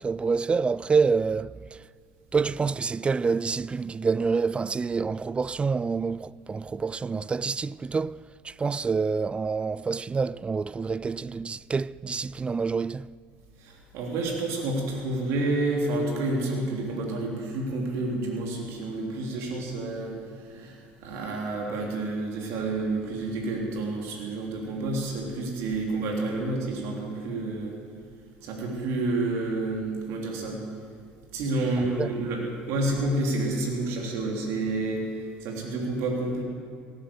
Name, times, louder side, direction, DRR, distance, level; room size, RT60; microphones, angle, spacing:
voice 1, 0.0-1.8 2.3-13.1 31.8-32.2, right 5 dB, 20° right, 0.3 m, -27 dB
voice 2, 13.6-20.2 20.4-27.7 28.4-30.6 31.3-32.4 32.7-35.1 35.4-36.4, right 2 dB, 70° right, 3.5 m, -29 dB
18.0 x 10.5 x 7.1 m
supercardioid pair, 90°, 5 cm